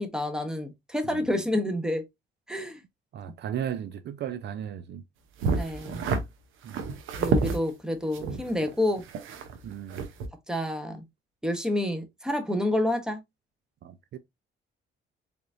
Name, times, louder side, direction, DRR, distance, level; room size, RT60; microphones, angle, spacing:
voice 1, 0.0-2.0 2.5-2.8 5.6-6.0 7.2-9.0 10.5-11.0 11.4-13.2, left 1 dB, 5° right, 1.0 m, -29 dB
voice 2, 3.1-5.0 5.9-6.2 6.6-6.8 9.6-10.0 13.8-14.2, right 9 dB, 60° right, 0.4 m, -36 dB
sound 1, 5.4-6.2 6.7-7.6 8.1-9.6 9.9-10.3, right 4 dB, 90° right, 0.8 m, -29 dB
3.8 x 3.5 x 2.5 m
cardioid pair, 90°, 20 cm